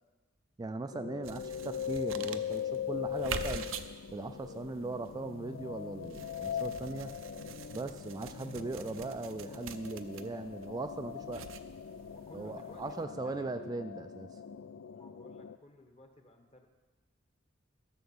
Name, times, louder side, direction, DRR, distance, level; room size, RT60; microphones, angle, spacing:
voice 1, 0.6-3.7 4.1-7.1 7.7-11.5 12.3-14.3, right 3 dB, 20° right, 8 dB, 0.3 m, -39 dB
sound 1, 0.9-15.6, left 8 dB, 75° left, 0.4 m, -41 dB
sound 2, 1.2-13.0, right 6 dB, 90° right, 0.6 m, -46 dB
voice 2, 12.1-13.5 14.9-16.7, left 1 dB, 30° left, 5 dB, 1.3 m, -56 dB
13.0 x 7.0 x 7.1 m, 1.3 s
head